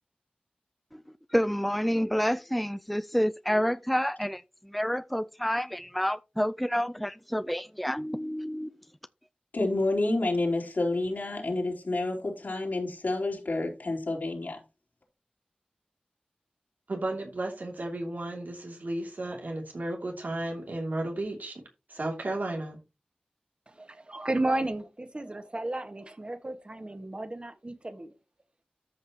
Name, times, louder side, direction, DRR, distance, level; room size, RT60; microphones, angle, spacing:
voice 1, 1.3-8.7, equal, ahead, 0.4 m, -29 dB
voice 2, 9.5-14.6, left 2 dB, 85° left, 3.4 m, -29 dB
voice 3, 16.9-21.6 21.9-22.8, right 2 dB, 80° right, 2.9 m, -34 dB
voice 4, 23.8-28.1, right 2 dB, 40° right, 1.8 m, -33 dB
13.5 x 5.6 x 3.1 m
wide cardioid pair, 55°, 3 cm